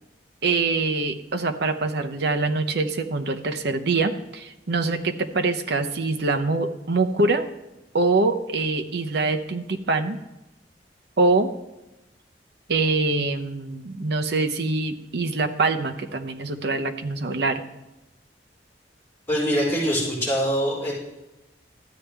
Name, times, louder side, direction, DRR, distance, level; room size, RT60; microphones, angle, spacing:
voice 1, 0.4-7.5 7.9-10.2 11.2-11.5 12.7-17.6, right 3 dB, 65° right, 6 dB, 0.8 m, -24 dB
voice 2, 19.3-20.9, equal, 15° left, -7 dB, 4.2 m, -23 dB
13.5 x 8.6 x 3.4 m, 0.98 s
head